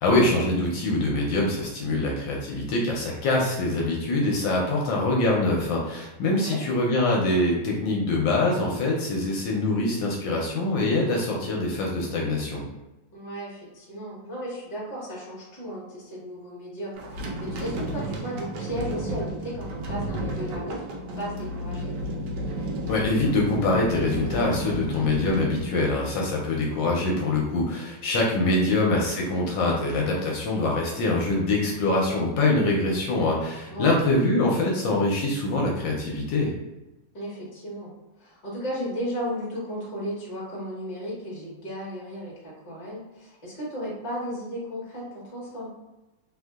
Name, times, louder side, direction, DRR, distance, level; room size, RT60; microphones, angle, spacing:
voice 1, 0.0-12.6 22.9-36.5, left 2 dB, 75° left, -2 dB, 1.2 m, -24 dB
voice 2, 13.1-21.9 28.6-28.8 33.7-34.0 37.1-37.9 38.2-45.7, equal, 30° left, -6 dB, 0.9 m, -35 dB
sound 1, 17.0-26.4, equal, 75° right, 1.2 m, -32 dB
3.2 x 2.6 x 2.3 m, 1.0 s
omnidirectional pair, 2.1 m